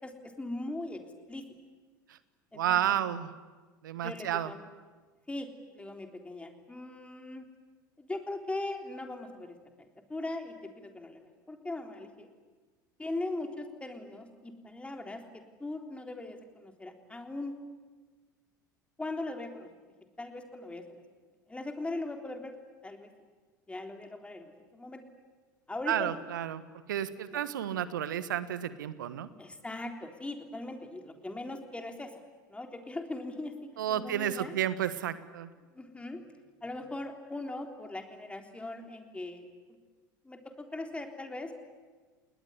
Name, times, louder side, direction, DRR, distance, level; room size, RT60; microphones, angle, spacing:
voice 1, 0.0-1.0 1.3-1.4 2.5-3.0 4.0-4.6 5.3-7.5 8.0-12.3 13.0-17.6 19.0-19.7 20.2-21.0 21.5-22.5 22.8-23.1 23.7-25.1 25.7-26.2 27.3-27.5 29.4-32.2 32.5-34.5 35.7-36.2 36.6-39.8 40.2-41.5, left 2 dB, 10° left, 4 dB, 3.6 m, -40 dB
voice 2, 2.5-3.3 3.8-4.5 25.9-26.6 26.9-29.3 33.8-35.5, right 10 dB, 70° right, 14 dB, 1.4 m, -31 dB
29.5 x 20.0 x 9.9 m, 1.4 s
figure-of-eight pair, 75°, 11 cm